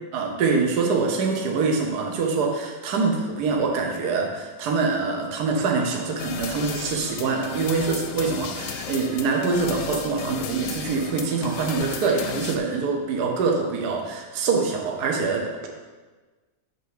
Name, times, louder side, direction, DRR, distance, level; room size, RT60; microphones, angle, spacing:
voice 1, 0.1-15.7, right 4 dB, 60° right, 1 dB, 1.4 m, -24 dB
sound 1, 6.2-12.6, left 6 dB, 85° left, 1.5 m, -34 dB
6.8 x 4.9 x 6.6 m, 1.3 s
omnidirectional pair, 2.0 m